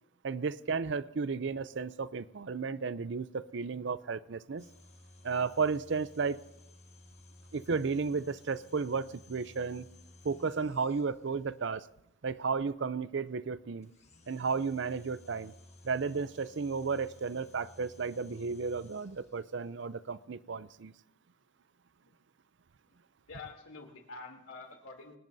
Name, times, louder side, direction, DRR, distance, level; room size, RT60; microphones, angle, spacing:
voice 1, 0.2-4.7 5.2-6.4 7.5-9.9 10.2-11.9 12.2-13.9 14.3-15.5 15.8-20.9, right 5 dB, 60° right, 16 dB, 0.5 m, -33 dB
sound 1, 4.6-11.5 13.8-19.6, left 2 dB, 35° left, 1.5 m, -57 dB
voice 2, 23.3-25.2, left 3 dB, 90° left, 2 dB, 3.0 m, -47 dB
25.0 x 19.5 x 2.7 m, 0.82 s
head